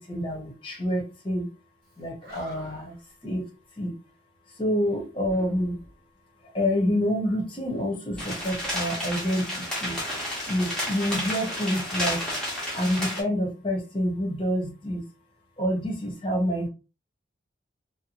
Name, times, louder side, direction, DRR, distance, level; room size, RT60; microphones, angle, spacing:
voice 1, 0.0-1.5 2.0-2.9 3.2-3.4 3.8-3.9 4.6-5.8 6.5-10.0 10.5-12.2 12.7-15.1 15.6-16.7, equal, 25° left, -1 dB, 0.9 m, -27 dB
Animal, 1.9-2.0 2.2-3.0 5.2-6.1 8.1-9.4, equal, 50° right, 1.0 m, -46 dB
sound 1, 8.2-13.2, equal, 5° left, 0.9 m, -31 dB
2.7 x 2.1 x 2.8 m, 0.31 s
head